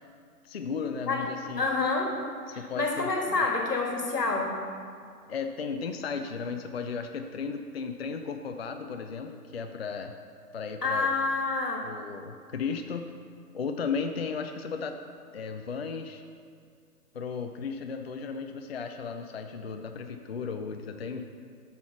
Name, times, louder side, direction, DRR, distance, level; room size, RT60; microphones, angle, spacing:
voice 1, 0.4-1.7 2.5-3.1 3.3-3.4 5.3-10.1 10.5-11.1 11.8-13.0 13.5-15.0 15.3-16.2 17.1-21.2, left 5 dB, 45° left, 6 dB, 0.4 m, -35 dB
voice 2, 1.6-2.1 2.5-4.6 10.8-11.9, left 3 dB, 85° left, 1 dB, 1.9 m, -28 dB
7.5 x 5.8 x 5.9 m, 2.3 s
figure-of-eight pair, 135°, 47 cm